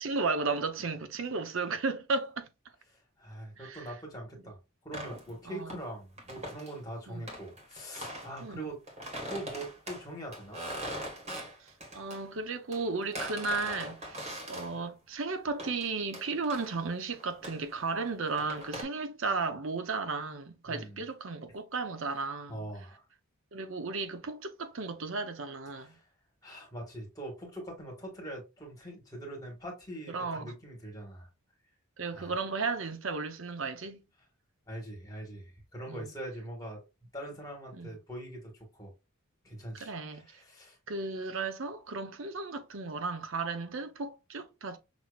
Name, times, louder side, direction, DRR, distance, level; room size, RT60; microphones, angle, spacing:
voice 1, 0.0-2.5 3.6-3.9 5.5-5.8 7.1-7.3 8.4-8.6 11.6-22.7 23.5-25.9 30.1-30.5 32.0-34.0 35.9-36.0 37.7-37.9 39.7-40.4 40.9-44.8, right 4 dB, 65° right, 0.7 m, -34 dB
voice 2, 2.9-8.8 9.1-10.6 20.7-21.0 22.5-23.0 25.7-26.1 26.4-31.3 32.1-32.3 34.7-36.8 37.1-38.9 39.4-40.8, right 1 dB, 15° left, 1.7 m, -43 dB
sound 1, 4.9-5.9 6.2-6.8 7.3-8.4 8.9-12.2 12.7-14.8 15.6-15.9 16.1-16.8 17.1-18.8, right 1 dB, 30° right, 1.5 m, -41 dB
6.1 x 2.8 x 2.4 m
head